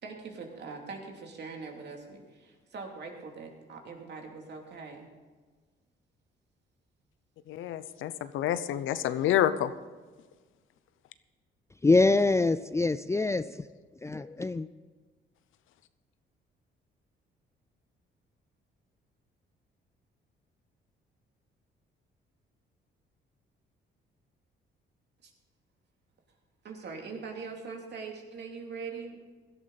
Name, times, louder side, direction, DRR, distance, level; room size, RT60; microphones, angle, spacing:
voice 1, 0.0-5.1 25.2-25.3 26.6-29.2, right 4 dB, 60° right, 1 dB, 2.8 m, -42 dB
voice 2, 7.5-9.7, left 11 dB, 80° left, 13 dB, 0.7 m, -28 dB
voice 3, 11.8-13.4 14.0-14.7, left 3 dB, 15° left, 13 dB, 0.4 m, -24 dB
17.0 x 12.0 x 4.1 m, 1.4 s
cardioid pair, 90°, 20 cm